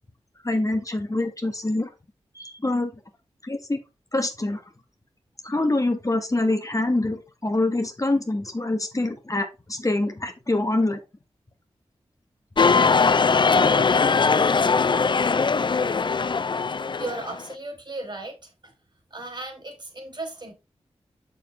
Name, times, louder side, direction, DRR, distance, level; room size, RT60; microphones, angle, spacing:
voice 1, 0.4-1.9 2.3-2.9 3.4-3.8 4.1-4.6 5.4-11.0, left 2 dB, 30° left, 5 dB, 1.6 m, -25 dB
sound 1, 12.6-17.4, left 5 dB, 45° left, 0.4 m, -20 dB
voice 2, 17.0-18.5 19.1-20.5, right 2 dB, 45° right, 4 dB, 3.4 m, -35 dB
6.8 x 6.7 x 3.3 m, 0.27 s
cardioid pair, 40°, 11 cm